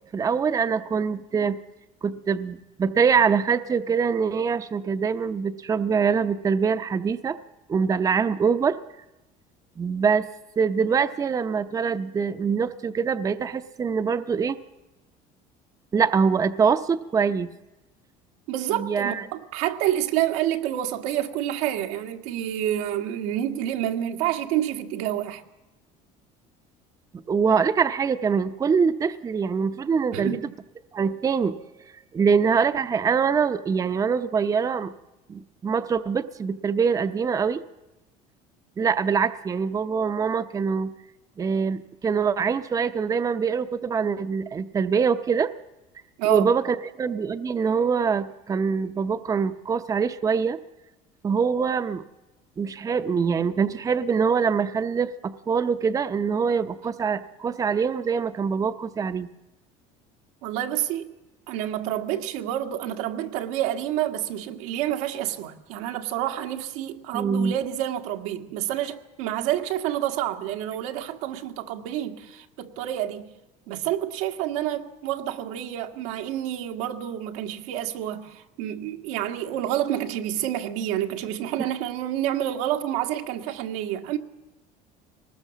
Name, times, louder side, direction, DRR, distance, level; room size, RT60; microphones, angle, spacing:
voice 1, 0.1-1.6 2.0-7.4 7.7-8.8 9.8-10.3 10.6-14.6 15.9-17.5 18.8-19.2 27.3-30.4 30.9-31.6 32.1-34.9 35.3-37.6 38.8-40.9 41.4-45.5 46.2-50.6 51.2-52.0 52.6-59.3 67.1-67.5 81.6-81.7, right 6 dB, 20° right, 0.7 m, -24 dB
voice 2, 18.5-25.4 30.1-30.5 46.2-46.5 60.4-61.1 61.5-73.3 73.7-84.2, right 12 dB, 90° right, 1.9 m, -28 dB
23.0 x 19.5 x 7.2 m
cardioid pair, 135°, 16 cm